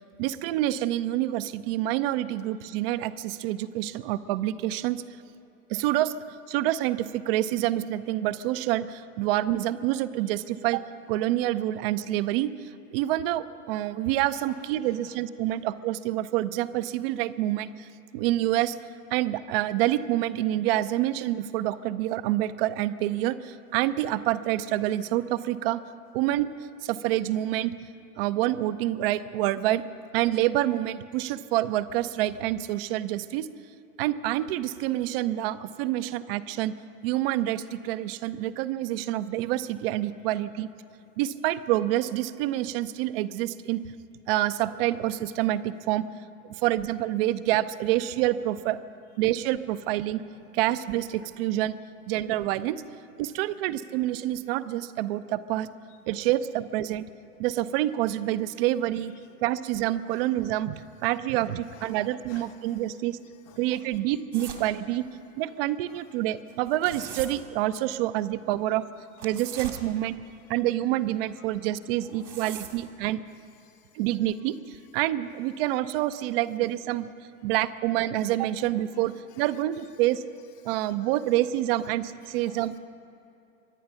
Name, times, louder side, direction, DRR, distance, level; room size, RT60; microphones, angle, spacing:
voice 1, 0.0-5.0 5.7-6.1 6.5-10.8 11.1-18.8 19.1-25.8 26.1-26.5 26.8-27.7 28.2-29.8 30.1-33.5 34.0-36.7 37.0-40.7 41.2-43.8 44.3-46.1 46.5-48.8 49.2-50.2 50.5-51.8 52.1-52.8 53.2-55.7 56.1-57.1 57.4-59.1 59.4-63.2 63.6-65.0 65.4-68.8 69.2-70.1 70.5-73.2 73.9-77.1 77.4-80.3 80.6-82.8, right 14 dB, 40° right, 0.7 m, -27 dB
voice 2, 14.5-15.5 40.3-40.4 55.9-56.2 59.1-59.3 60.1-60.3 61.6-62.9 63.2-64.0 64.3-64.5 65.9-66.1 70.3-70.6 71.4-71.7 72.0-72.5 73.4-74.1 75.7-75.8 78.9-79.6 80.6-81.2 82.0-82.8, left 11 dB, 35° left, 0.6 m, -56 dB
sound 1, 64.3-64.7 66.5-67.3 69.2-69.8 72.0-72.8, right 8 dB, 70° right, 2.4 m, -39 dB
24.0 x 10.0 x 5.7 m
figure-of-eight pair, 100°, 44 cm